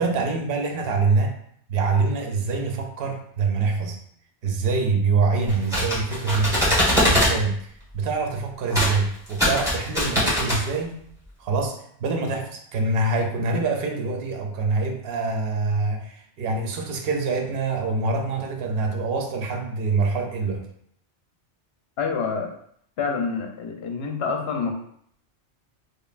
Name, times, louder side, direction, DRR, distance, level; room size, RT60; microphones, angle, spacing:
voice 1, 0.0-1.3 1.7-4.0 4.4-7.6 7.9-11.0 11.4-20.7, right 3 dB, 60° right, 4 dB, 0.7 m, -25 dB
sound 1, 5.5-7.3 8.7-8.9 9.3-10.6, equal, 5° right, 1.3 m, -22 dB
voice 2, 22.0-22.5 23.0-24.7, left 5 dB, 65° left, 3 dB, 0.8 m, -27 dB
5.1 x 2.2 x 2.4 m, 0.66 s
omnidirectional pair, 1.2 m